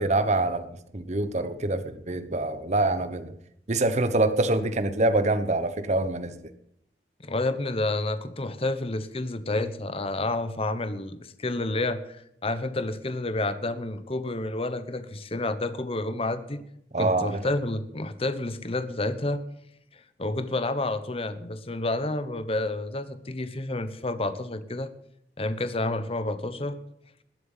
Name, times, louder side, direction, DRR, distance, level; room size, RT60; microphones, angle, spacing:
voice 1, 0.0-3.3 3.7-6.3 16.9-17.4, right 2 dB, 40° right, 11 dB, 1.0 m, -25 dB
voice 2, 7.2-16.6 17.0-19.4 20.2-24.9 25.4-26.8, left 2 dB, 35° left, 11 dB, 1.1 m, -29 dB
20.5 x 7.8 x 7.3 m, 0.75 s
head